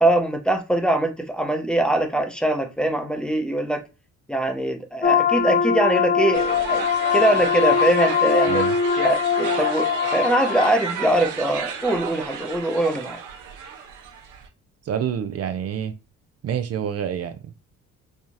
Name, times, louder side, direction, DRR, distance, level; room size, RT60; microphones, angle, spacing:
voice 1, 0.0-3.9 4.3-6.9 7.1-8.6 9.0-13.2, right 1 dB, 5° left, 0.8 m, -22 dB
sound 1, 5.0-10.7, left 7 dB, 35° left, 0.6 m, -21 dB
sound 2, 6.3-14.5, right 7 dB, 85° right, 0.9 m, -33 dB
voice 2, 14.9-15.9 16.4-17.4, right 8 dB, 55° right, 0.5 m, -27 dB
4.7 x 2.3 x 2.7 m
cardioid pair, 90°, 30 cm